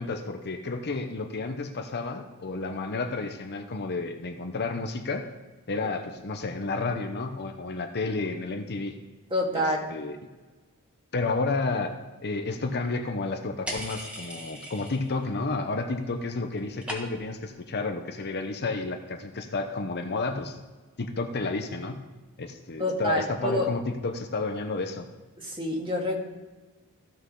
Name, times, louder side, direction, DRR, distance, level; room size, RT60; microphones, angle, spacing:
voice 1, 0.0-5.3 5.7-9.0 9.5-10.2 11.1-20.6 21.0-22.0 22.4-25.1, left 3 dB, 50° left, 6 dB, 0.8 m, -31 dB
voice 2, 9.3-9.9 22.8-23.7 25.4-26.1, equal, 25° right, -1 dB, 1.9 m, -27 dB
sound 1, 13.7-15.3 15.5-16.1 16.3-17.4, equal, 5° right, 1.5 m, -39 dB
15.0 x 6.1 x 3.8 m, 1.2 s
head